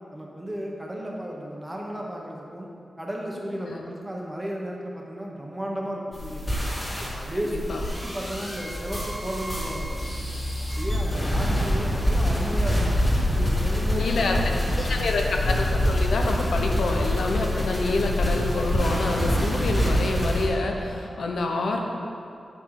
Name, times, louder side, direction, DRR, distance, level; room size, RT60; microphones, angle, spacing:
voice 1, 0.1-2.7 3.0-6.5 7.2-7.7 8.0-10.2 10.6-12.9 13.3-15.0 21.1-21.3, equal, 10° right, -2 dB, 1.2 m, -34 dB
sound 1, 6.1-20.5, left 1 dB, 25° left, 2.1 m, -25 dB
voice 2, 13.9-14.3 14.9-21.8, left 2 dB, 80° left, 2 dB, 0.9 m, -27 dB
9.1 x 6.1 x 4.9 m, 2.5 s
wide cardioid pair, 155°, 0 cm